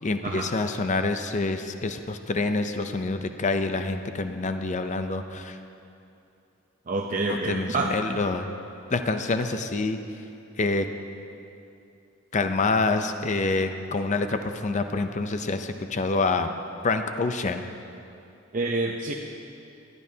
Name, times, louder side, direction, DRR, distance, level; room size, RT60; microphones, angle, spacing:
voice 1, 0.0-5.6 7.3-8.5 8.9-10.0 10.6-10.9 12.3-16.5 16.8-17.6, left 3 dB, 35° left, 8 dB, 0.5 m, -27 dB
voice 2, 6.9-7.9 18.5-19.1, right 3 dB, 40° right, 1 dB, 0.6 m, -27 dB
19.5 x 12.5 x 2.8 m, 2.7 s
head